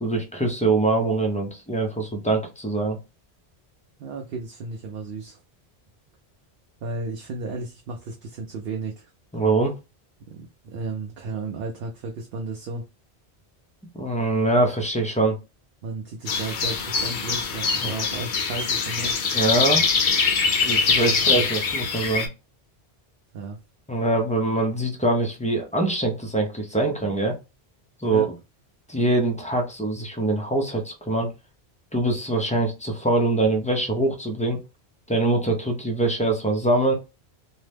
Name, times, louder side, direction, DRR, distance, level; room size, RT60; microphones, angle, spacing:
voice 1, 0.0-3.0 9.3-9.7 14.0-15.4 17.8-17.9 19.3-19.8 20.6-22.3 23.9-27.3 28.0-28.3 28.9-31.3 31.9-34.6 35.1-36.9, right 2 dB, 10° left, 2 dB, 0.3 m, -23 dB
voice 2, 4.0-5.4 6.8-9.1 10.2-12.8 15.8-19.2 21.2-21.4 23.3-23.6 28.0-28.3, right 3 dB, 70° right, 2 dB, 0.7 m, -34 dB
sound 1, 16.3-22.3, left 5 dB, 60° left, 0.6 m, -23 dB
2.7 x 2.1 x 3.3 m, 0.27 s
omnidirectional pair, 1.1 m